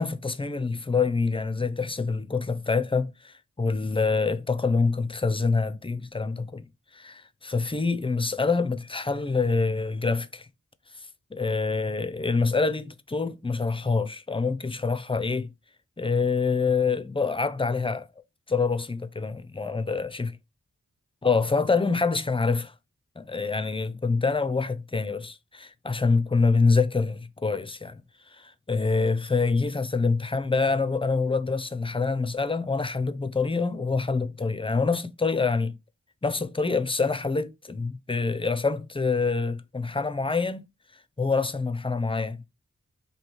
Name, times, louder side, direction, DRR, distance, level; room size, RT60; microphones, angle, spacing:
voice 1, 0.0-10.5 11.3-15.5 16.0-18.1 18.5-20.3 21.2-22.7 23.2-28.0 28.4-35.8 36.2-40.6 41.2-42.5, left 4 dB, 20° left, 0.4 m, -26 dB
3.1 x 2.8 x 4.5 m
wide cardioid pair, 50°, 31 cm